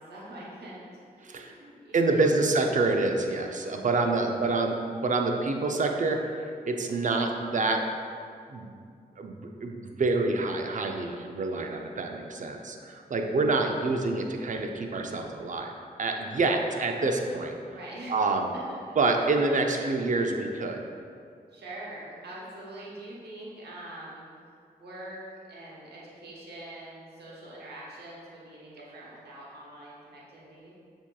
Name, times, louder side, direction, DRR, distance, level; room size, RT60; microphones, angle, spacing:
voice 1, 0.0-2.4 4.0-4.4 17.7-18.2 18.5-18.8 19.4-19.5 21.5-24.2 24.8-25.2 25.5-30.7, right 1 dB, 85° right, -6 dB, 1.0 m, -44 dB
voice 2, 1.9-7.8 8.5-8.7 9.2-15.7 16.0-17.5 18.1-18.4 19.0-20.8, right 3 dB, 50° right, 3 dB, 0.5 m, -27 dB
6.9 x 2.9 x 2.3 m, 2.2 s
cardioid pair, 45°, 17 cm